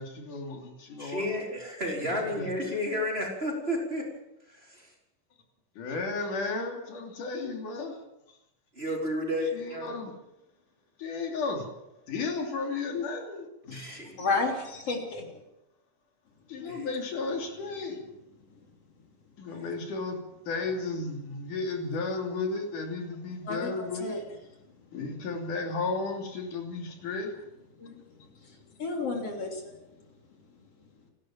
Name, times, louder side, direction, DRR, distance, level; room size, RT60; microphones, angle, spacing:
voice 1, 0.0-1.3 2.0-2.1 2.4-2.5 5.8-8.0 9.5-10.1 11.0-11.7 12.1-13.8 16.5-18.0 19.4-20.2 20.5-24.2 24.9-27.3, left 3 dB, 80° left, 2 dB, 4.5 m, -33 dB
voice 2, 1.0-4.0 4.5-4.9 8.8-9.9 13.7-14.2 16.6-16.9 19.5-19.7, left 1 dB, 20° right, -1 dB, 4.6 m, -32 dB
voice 3, 14.2-15.3 23.5-23.7 24.0-24.2 27.8-28.0 28.8-29.7, left 3 dB, 50° left, 2 dB, 4.3 m, -31 dB
30.0 x 12.0 x 7.5 m, 0.89 s
omnidirectional pair, 3.6 m